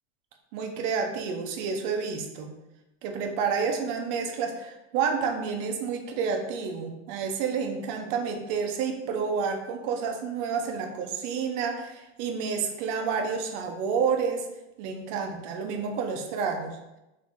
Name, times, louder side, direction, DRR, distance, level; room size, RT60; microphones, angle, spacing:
voice 1, 0.5-2.5 3.0-14.5 14.8-16.8, right 6 dB, 40° right, 4 dB, 0.5 m, -29 dB
3.5 x 2.7 x 3.9 m, 0.96 s
supercardioid pair, 160°, 34 cm